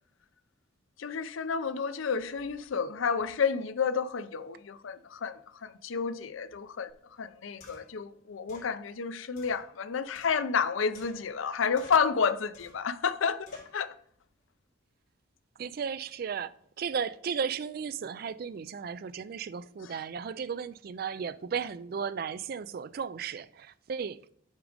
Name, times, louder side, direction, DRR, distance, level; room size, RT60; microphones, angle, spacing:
voice 1, 1.0-6.9 7.2-13.5 13.7-13.9 19.8-19.9, left 6 dB, 85° left, 0.5 m, -30 dB
sound 1, 6.9-7.0 7.6-8.0 8.5-8.7 9.4-10.6 10.9-11.5 11.8-12.2 12.5-12.9 13.5-13.8, left 2 dB, 45° left, 3.1 m, -52 dB
voice 2, 15.6-24.3, right 6 dB, 50° right, 0.3 m, -35 dB
8.1 x 5.1 x 5.0 m
head